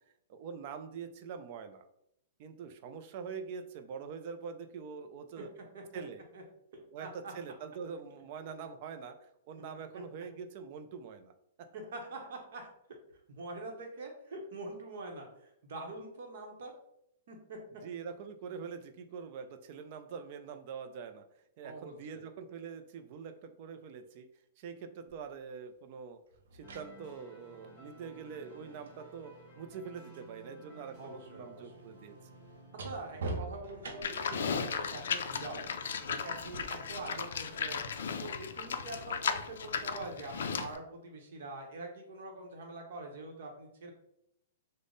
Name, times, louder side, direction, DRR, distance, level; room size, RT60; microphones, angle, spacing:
voice 1, 0.3-1.9 2.4-5.5 5.9-6.3 6.9-11.3 17.8-21.2 21.6-24.3 24.6-26.2 26.5-32.2, right 6 dB, 35° right, 8 dB, 0.3 m, -44 dB
voice 2, 5.4-6.0 6.3-6.4 6.7-7.3 9.9-10.0 11.7-12.7 13.3-16.7 17.3-17.6 21.6-22.3 31.0-31.7 32.8-35.7 36.0-43.9, right 2 dB, 55° right, 2 dB, 0.8 m, -45 dB
sound 1, 25.1-25.2 26.3-30.3 30.6-34.4 36.4-36.6, right 2 dB, 90° right, 0.5 m, -45 dB
sound 2, 26.6-38.1, right 1 dB, 20° left, 0.8 m, -56 dB
Livestock farm animals working animals, 34.0-40.8, left 6 dB, 80° left, 0.3 m, -36 dB
3.5 x 2.0 x 3.8 m, 0.77 s
hypercardioid pair, 175°, 0 cm